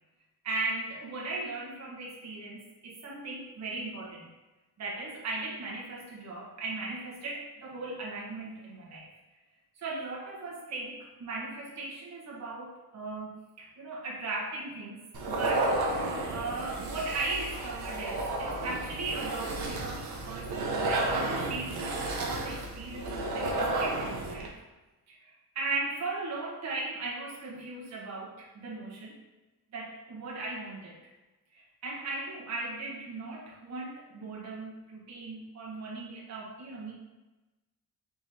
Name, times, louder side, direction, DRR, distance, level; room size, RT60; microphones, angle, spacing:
voice 1, 0.4-4.3 4.8-9.1 9.8-15.7 16.3-21.9 22.2-24.6 25.1-29.2 29.7-31.0 31.5-36.9, right 3 dB, 45° right, -4 dB, 1.1 m, -38 dB
sound 1, 15.1-24.5, right 2 dB, 75° right, 0.9 m, -32 dB
4.9 x 3.7 x 2.7 m, 1.1 s
cardioid pair, 130°, 36 cm